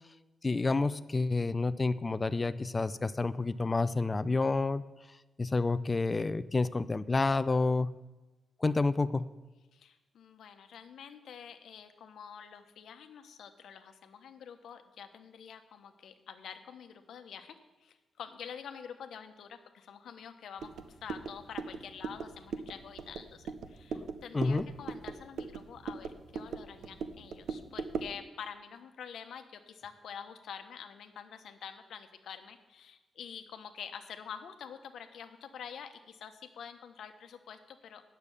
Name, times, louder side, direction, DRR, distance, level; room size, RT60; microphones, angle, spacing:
voice 1, 0.4-4.8 5.4-7.9 8.6-9.2 23.9-24.1 24.3-24.7, left 3 dB, 20° left, 14 dB, 0.4 m, -29 dB
voice 2, 9.7-17.5 17.8-38.0, left 7 dB, 75° left, 8 dB, 0.9 m, -47 dB
sound 1, 20.6-28.2, right 5 dB, 80° right, 0.7 m, -40 dB
9.2 x 6.7 x 8.3 m, 1.2 s
wide cardioid pair, 175°, 0 cm